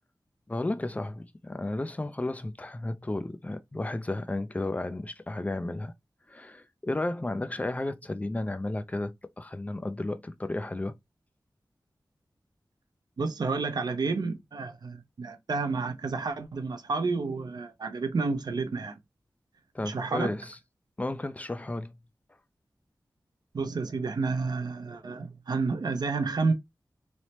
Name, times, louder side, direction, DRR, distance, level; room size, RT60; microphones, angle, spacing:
voice 1, 0.5-5.9 6.3-10.9 19.7-20.6 21.0-22.0, left 2 dB, 20° left, 0.3 m, -33 dB
voice 2, 13.2-19.0 19.8-20.3 23.5-26.5, right 4 dB, 65° right, 0.5 m, -30 dB
3.1 x 2.0 x 2.7 m
wide cardioid pair, 80°, 7 cm